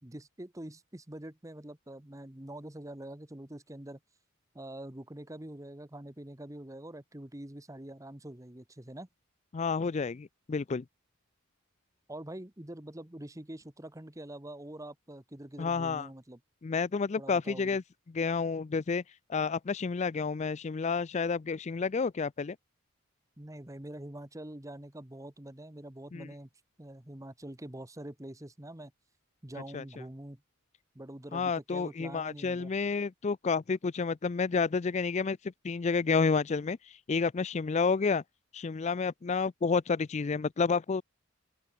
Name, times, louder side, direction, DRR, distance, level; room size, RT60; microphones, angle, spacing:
voice 1, 0.0-4.0 4.5-9.1 12.1-16.4 17.2-17.8 23.4-26.5 26.8-28.9 29.4-30.4 30.9-32.7, right 1 dB, 15° right, 1.2 m, -45 dB
voice 2, 9.5-10.8 15.6-16.1 16.6-17.8 18.1-19.0 19.3-22.6 26.1-26.3 29.7-29.8 31.3-38.2 38.5-41.0, left 5 dB, 35° left, 0.4 m, -30 dB
open air
head